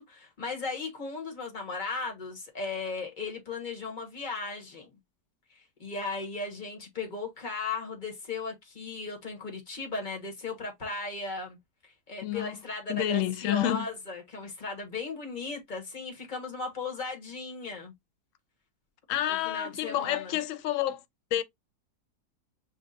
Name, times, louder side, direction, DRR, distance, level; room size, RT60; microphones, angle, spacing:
voice 1, 0.0-4.9 5.5-11.6 11.8-17.9 19.3-20.4, left 3 dB, 30° left, 1.2 m, -36 dB
voice 2, 12.2-12.6 12.9-13.9 19.1-21.0 21.3-21.4, left 12 dB, 65° left, 0.8 m, -29 dB
7.0 x 2.4 x 2.5 m
omnidirectional pair, 1.7 m